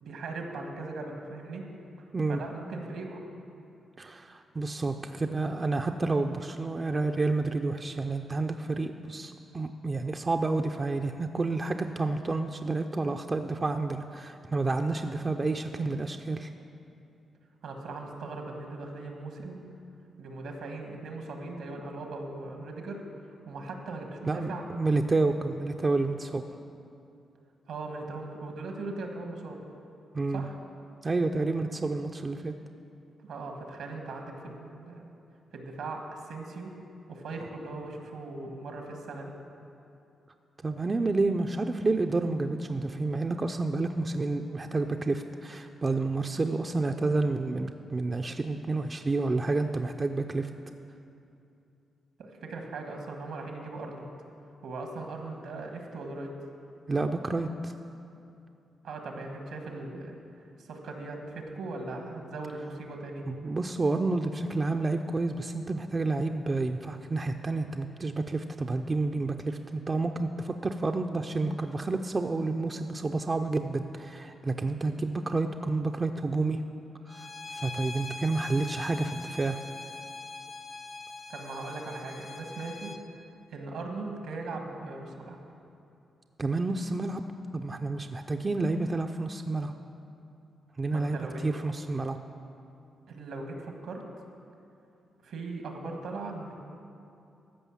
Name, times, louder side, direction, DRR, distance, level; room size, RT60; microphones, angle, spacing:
voice 1, 0.0-1.7 2.3-3.3 17.6-19.6 20.2-24.6 27.7-29.6 30.3-30.6 33.2-35.0 35.5-36.7 37.1-39.3 52.2-54.1 54.6-56.3 58.8-60.1 60.6-63.2 81.3-82.9 83.5-85.4 90.9-91.4 93.1-94.0 95.2-96.5, right 3 dB, 80° right, 3 dB, 1.5 m, -39 dB
voice 2, 2.1-2.4 4.0-16.5 24.3-26.4 30.1-30.4 31.0-32.5 40.6-50.5 56.9-57.7 63.3-76.6 77.1-79.6 86.4-87.2 87.5-89.7 90.8-92.2, right 3 dB, 35° right, 5 dB, 0.5 m, -29 dB
Bowed string instrument, 77.1-83.0, left 3 dB, 50° left, 1.1 m, -42 dB
14.0 x 5.6 x 7.2 m, 2.7 s
supercardioid pair, 55°, 0 cm